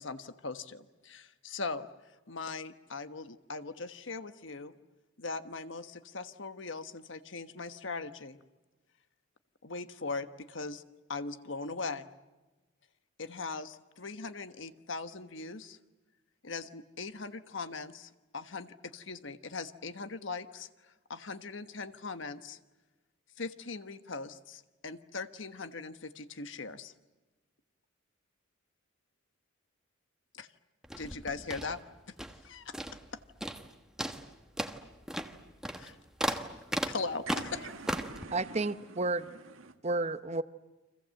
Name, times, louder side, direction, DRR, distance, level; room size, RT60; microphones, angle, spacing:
voice 1, 0.0-1.9 2.3-4.7 5.2-8.4 9.6-10.8 11.1-12.1 13.2-15.8 16.4-22.6 23.4-26.9 30.3-30.5 31.0-31.8 32.1-32.2 32.4-32.7 33.1-33.2 35.7-36.0 36.3-36.4 36.9-37.2 37.5-37.6, left 4 dB, 65° left, 10 dB, 1.3 m, -40 dB
sound 1, 30.8-32.5 32.7-33.1 33.4-33.7 34.0-38.2, right 1 dB, 5° right, 1.3 m, -36 dB
voice 2, 37.3-39.8, right 3 dB, 80° right, 7 dB, 1.9 m, -47 dB
voice 3, 38.3-39.2 39.8-40.4, right 2 dB, 35° right, 12 dB, 0.9 m, -31 dB
30.0 x 25.5 x 7.8 m, 1.1 s
head